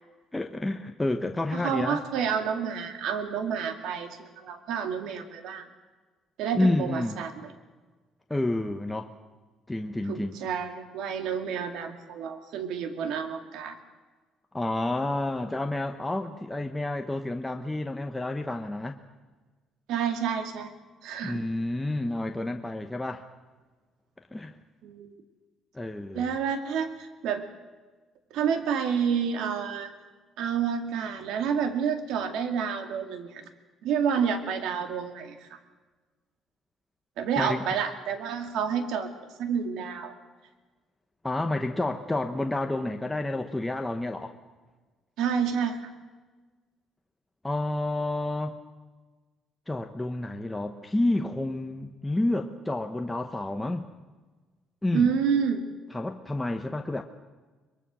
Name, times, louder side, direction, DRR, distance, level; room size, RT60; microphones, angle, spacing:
voice 1, 0.3-2.0 6.5-7.2 8.3-9.2 9.7-10.3 14.5-19.0 21.2-23.3 24.3-24.6 25.7-26.4 37.4-37.7 41.2-44.4 47.4-48.6 49.7-53.9 54.8-55.1 55.9-57.0, left 2 dB, 10° left, 5 dB, 1.0 m, -29 dB
voice 2, 1.5-5.7 6.4-7.5 10.1-13.8 19.9-20.7 21.0-21.4 24.8-25.1 26.1-27.4 28.3-29.9 30.4-33.4 33.8-35.6 37.2-39.1 39.4-40.1 45.2-45.9 54.9-55.6, right 7 dB, 80° right, 7 dB, 2.3 m, -29 dB
23.5 x 22.0 x 6.2 m, 1.3 s
cardioid pair, 120°, 0 cm